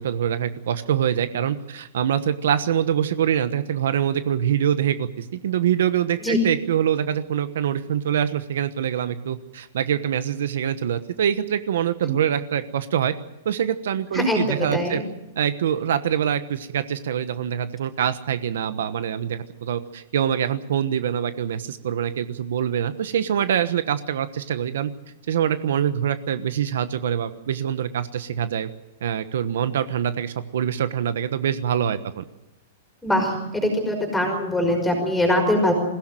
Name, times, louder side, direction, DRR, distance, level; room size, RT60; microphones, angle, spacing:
voice 1, 0.0-13.1 13.4-15.0 15.4-24.9 25.3-28.7 29.0-32.2, right 9 dB, 75° right, 11 dB, 1.2 m, -24 dB
voice 2, 14.1-15.0 33.0-35.7, left 1 dB, 5° left, 3 dB, 5.5 m, -22 dB
21.5 x 16.5 x 9.2 m, 0.89 s
supercardioid pair, 165°, 0 cm